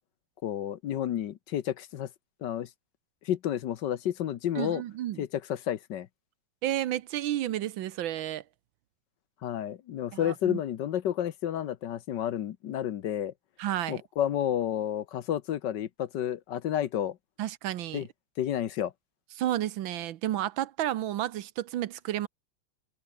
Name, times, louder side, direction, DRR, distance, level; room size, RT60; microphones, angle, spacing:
voice 1, 0.4-2.1 2.4-2.7 3.2-4.8 5.2-6.1 9.4-13.3 13.9-17.2 17.9-18.1 18.4-18.9, left 10 dB, 65° left, 1.5 m, -31 dB
voice 2, 4.6-5.3 6.6-8.4 10.1-10.6 13.6-14.0 17.4-18.1 19.4-22.3, right 13 dB, 80° right, 1.6 m, -31 dB
omnidirectional pair, 2.2 m